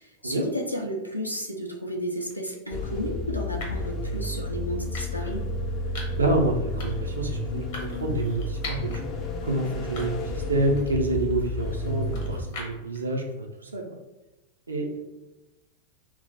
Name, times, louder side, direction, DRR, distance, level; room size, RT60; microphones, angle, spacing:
voice 1, 0.0-5.5, equal, 90° left, 1 dB, 0.5 m, -33 dB
sound 1, 2.3-2.5 3.6-3.9 4.9-5.4 5.9-6.3 6.8-7.1 7.7-9.0 9.4-9.5 10.0-10.4 10.8-13.0, left 2 dB, 55° left, 0.9 m, -41 dB
sound 2, 2.7-12.5, left 2 dB, 30° left, 0.4 m, -31 dB
voice 2, 6.2-13.8 14.7-15.0, right 2 dB, 75° right, 2 dB, 0.5 m, -28 dB
2.3 x 2.1 x 3.8 m, 1.0 s
figure-of-eight pair, 90°, 0 cm